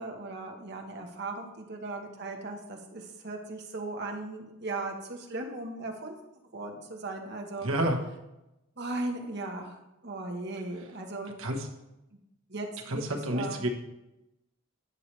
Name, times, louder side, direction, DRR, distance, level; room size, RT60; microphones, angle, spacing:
voice 1, 0.0-6.2 6.5-7.7 8.8-11.3 12.1-12.2 12.5-13.6, right 2 dB, 55° right, 2 dB, 1.2 m, -37 dB
voice 2, 7.6-8.0 11.4-11.7 12.9-13.7, right 1 dB, 75° right, 2 dB, 1.2 m, -29 dB
10.5 x 6.7 x 3.3 m, 0.95 s
head